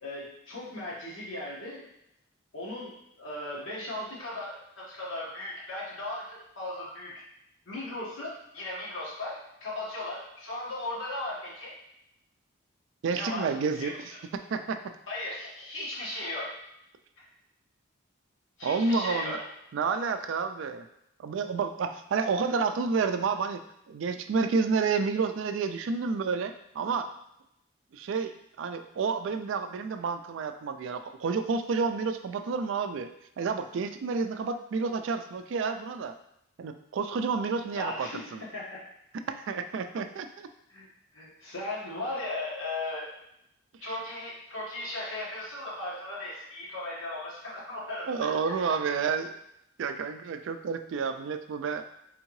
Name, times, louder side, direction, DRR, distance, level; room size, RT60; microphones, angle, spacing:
voice 1, 0.0-1.9 2.5-7.2 7.6-11.7 13.1-14.0 15.1-16.6 17.2-17.3 18.6-19.4 37.7-38.2 38.5-38.8 40.7-40.9 41.1-43.1 43.8-48.8, left 2 dB, 75° left, -6 dB, 1.4 m, -37 dB
voice 2, 13.0-14.8 18.6-19.4 19.7-20.8 21.2-23.6 23.9-27.1 27.9-33.1 33.4-36.1 36.6-38.4 39.3-40.5 48.1-49.3 49.8-51.8, right 5 dB, 65° right, 9 dB, 0.3 m, -30 dB
3.6 x 3.5 x 3.1 m, 0.79 s
head